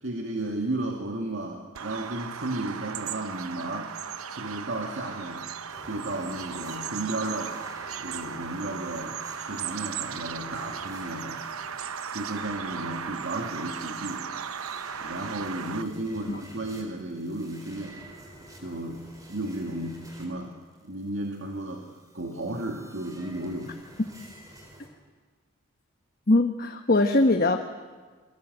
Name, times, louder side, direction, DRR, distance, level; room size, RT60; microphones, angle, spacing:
voice 1, 0.0-3.9 4.3-5.5 5.8-7.6 8.0-11.4 12.1-14.3 15.0-18.0 18.6-20.5 20.8-23.8, right 1 dB, 60° right, 0 dB, 2.3 m, -34 dB
Bird vocalization bird call bird song, 1.7-15.8, right 7 dB, 80° right, 0.9 m, -36 dB
sound 1, 5.7-24.9, right 1 dB, 15° right, 4.0 m, -50 dB
voice 2, 26.3-27.6, left 2 dB, 45° left, 5 dB, 1.1 m, -21 dB
28.5 x 22.5 x 8.0 m, 1.4 s
head